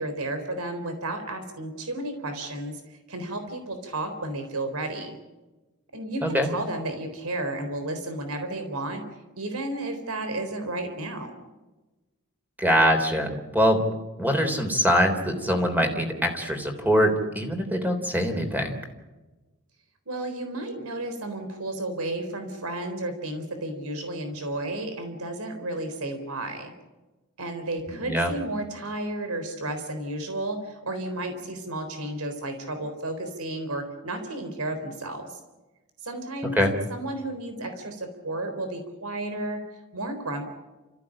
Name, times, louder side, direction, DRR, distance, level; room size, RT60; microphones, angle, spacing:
voice 1, 0.0-5.2 5.9-9.0 9.4-11.3 20.1-26.7 27.4-35.4 36.0-36.6 36.9-39.6 39.9-40.4, right 2 dB, 70° right, 7 dB, 3.9 m, -32 dB
voice 2, 12.6-13.8 14.2-18.8 27.9-28.3 36.6-36.7, equal, 10° right, 5 dB, 3.5 m, -23 dB
29.5 x 15.0 x 8.8 m, 1.1 s
head